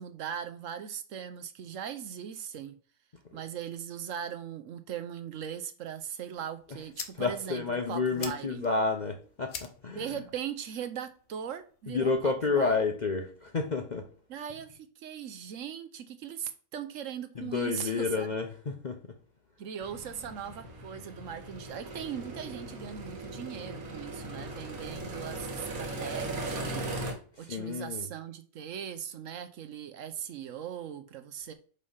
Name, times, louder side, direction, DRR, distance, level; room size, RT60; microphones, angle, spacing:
voice 1, 0.0-2.7 3.3-8.7 9.9-12.8 14.3-18.3 19.6-31.5, right 8 dB, 70° right, 1.0 m, -39 dB
sound 1, 6.3-12.3, left 7 dB, 75° left, 1.3 m, -47 dB
voice 2, 7.2-10.2 11.9-14.1 17.4-19.0 27.4-28.1, left 4 dB, 45° left, 0.6 m, -30 dB
sound 2, 19.8-27.1, right 2 dB, 90° right, 1.8 m, -38 dB
5.4 x 3.3 x 5.5 m
omnidirectional pair, 1.5 m